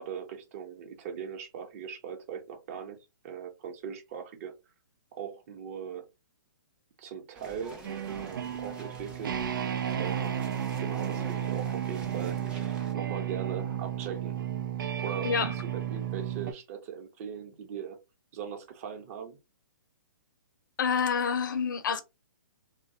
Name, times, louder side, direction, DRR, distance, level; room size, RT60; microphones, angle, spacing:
voice 1, 0.0-3.0 3.2-4.5 5.1-6.1 7.0-7.8 8.2-9.4 10.0-14.4 15.0-18.0 18.3-19.4, right 7 dB, 40° right, 0.9 m, -40 dB
sound 1, 7.3-12.9, right 2 dB, 10° right, 0.6 m, -48 dB
sound 2, 7.8-16.5, right 9 dB, 70° right, 0.5 m, -33 dB
voice 2, 20.8-22.0, left 6 dB, 65° left, 0.7 m, -27 dB
2.9 x 2.2 x 2.7 m
hypercardioid pair, 145°, 11 cm